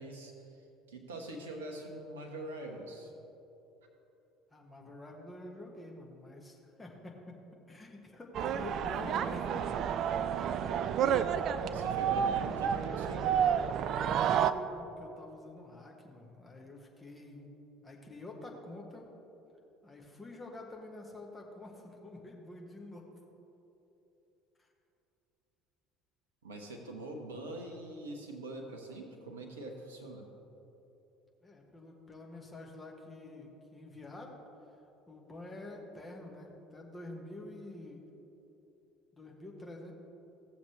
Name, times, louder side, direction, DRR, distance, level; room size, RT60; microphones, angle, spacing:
voice 1, 0.0-3.1 11.6-13.3 26.4-30.3, right 1 dB, 75° right, 3 dB, 1.0 m, -44 dB
voice 2, 4.5-7.4 7.7-9.9 14.1-17.5 17.8-19.1 19.8-23.1 24.6-24.7 31.4-34.3 35.1-38.0 39.1-39.9, left 2 dB, 20° left, 0 dB, 1.6 m, -47 dB
sound 1, 8.3-14.5, right 8 dB, 50° right, 0.3 m, -30 dB
16.0 x 7.0 x 3.3 m, 3.0 s
figure-of-eight pair, 60°, 0 cm